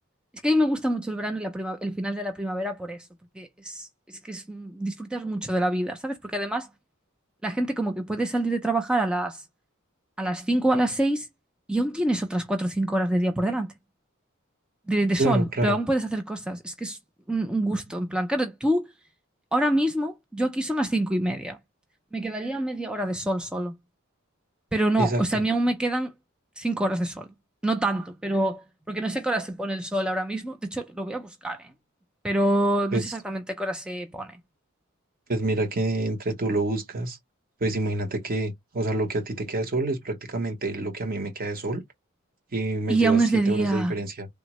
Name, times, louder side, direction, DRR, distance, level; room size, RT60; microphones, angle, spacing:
voice 1, 0.4-3.1 3.4-6.7 7.4-9.4 10.2-11.3 11.7-13.7 14.9-17.0 17.3-18.8 19.5-21.6 22.1-23.7 24.7-26.1 26.6-27.3 27.6-31.7 32.2-34.4 42.9-43.9, right 1 dB, 5° right, 0.3 m, -26 dB
voice 2, 15.2-15.8 25.0-25.4 32.9-33.0 35.3-37.2 37.6-41.8 42.5-44.3, right 2 dB, 45° right, 0.8 m, -27 dB
3.4 x 2.0 x 2.9 m
head